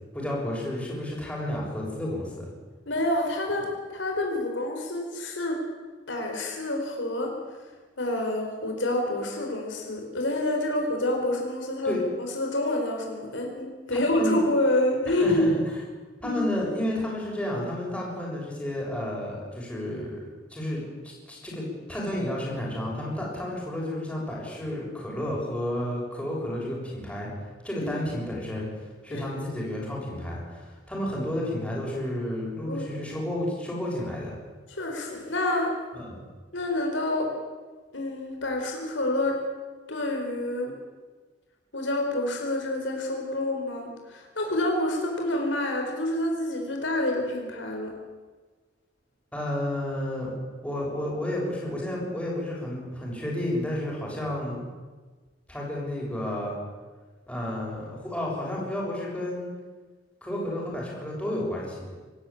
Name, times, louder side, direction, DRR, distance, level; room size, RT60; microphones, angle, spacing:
voice 1, 0.1-2.5 11.8-12.0 14.2-14.4 15.2-15.5 16.2-20.2 20.5-27.3 27.6-28.7 29.0-34.4 35.9-36.2 49.3-50.3 50.6-54.6 55.5-56.6 57.3-59.5 60.2-62.0, left 1 dB, 5° left, -4 dB, 6.9 m, -31 dB
voice 2, 2.9-5.6 6.1-7.7 8.0-15.6 16.2-16.4 27.8-28.0 29.1-29.2 32.6-33.0 34.7-35.7 36.5-37.3 37.9-39.4 39.9-40.7 41.7-47.9, left 1 dB, 75° left, 2 dB, 4.5 m, -28 dB
24.5 x 13.5 x 8.7 m, 1.4 s
head